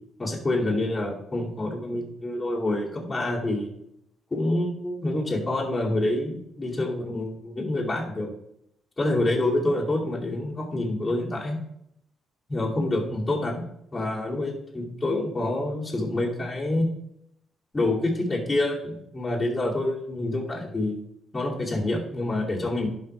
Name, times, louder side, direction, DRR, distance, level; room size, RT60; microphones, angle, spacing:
voice 1, 0.2-3.7 4.3-8.3 9.0-11.6 12.5-13.6 13.9-16.9 17.7-21.0 21.3-22.9, left 2 dB, 20° left, -5 dB, 2.6 m, -27 dB
11.5 x 5.3 x 3.4 m, 0.75 s
cardioid pair, 90°, 0 cm